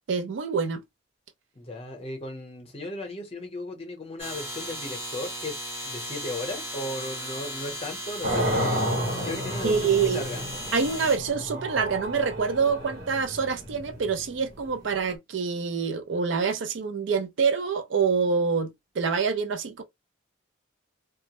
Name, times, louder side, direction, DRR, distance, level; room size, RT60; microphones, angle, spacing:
voice 1, 0.1-0.8 9.6-10.2 10.7-19.8, right 5 dB, 70° right, 0.4 m, -26 dB
voice 2, 1.5-8.8 9.2-10.5, left 2 dB, 30° left, 0.7 m, -36 dB
sound 1, 4.2-11.2, equal, 10° right, 0.7 m, -36 dB
sound 2, 8.2-15.1, equal, 50° right, 1.0 m, -31 dB
2.2 x 2.0 x 2.9 m
head